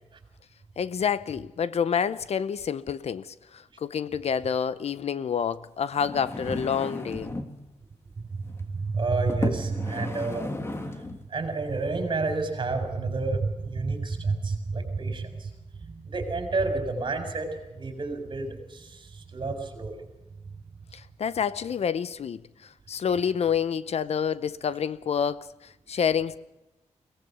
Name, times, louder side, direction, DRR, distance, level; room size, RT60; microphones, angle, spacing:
voice 1, 0.8-7.3 9.4-9.5 20.9-26.4, left 7 dB, 60° left, 0.7 m, -28 dB
sound 1, 5.9-7.6 8.4-8.6 9.3-11.3 11.9-12.0, left 2 dB, 20° left, 1.6 m, -34 dB
voice 2, 8.7-10.4 11.3-15.5 15.8-20.0, right 3 dB, 40° right, 4.5 m, -29 dB
22.5 x 18.0 x 6.9 m
wide cardioid pair, 175°, 12 cm